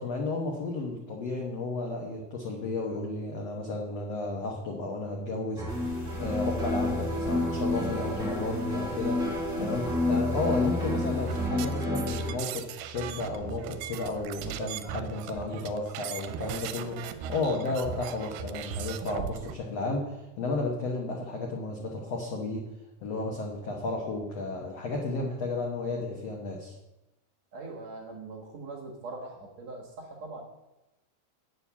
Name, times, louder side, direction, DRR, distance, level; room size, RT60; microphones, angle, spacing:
voice 1, 0.0-5.6 6.2-9.2 9.6-22.6 23.0-26.8, left 2 dB, 70° left, 0 dB, 1.5 m, -33 dB
sound 1, 5.6-12.3, left 2 dB, ahead, 0.8 m, -29 dB
sound 2, 5.7-11.5, right 1 dB, 30° left, 1.6 m, -45 dB
sound 3, 11.3-19.6, right 9 dB, 80° right, 2.5 m, -38 dB
voice 2, 27.5-30.4, right 3 dB, 55° right, 0 dB, 2.2 m, -41 dB
8.7 x 6.9 x 7.0 m, 1.0 s
omnidirectional pair, 4.5 m